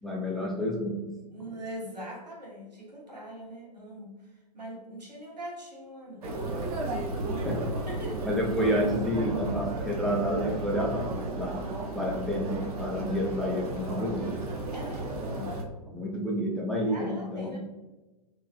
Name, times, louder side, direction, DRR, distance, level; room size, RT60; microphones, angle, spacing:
voice 1, 0.0-1.1 7.4-7.6 8.3-11.6 11.9-14.3 15.9-17.6, equal, ahead, -3 dB, 0.4 m, -29 dB
voice 2, 1.3-6.4 7.9-8.4 14.7-15.6 16.7-17.6, equal, 90° right, -3 dB, 1.1 m, -42 dB
sound 1, 6.2-15.6, right 2 dB, 65° right, 0.7 m, -34 dB
3.1 x 2.6 x 2.4 m, 1.1 s
figure-of-eight pair, 110°, 21 cm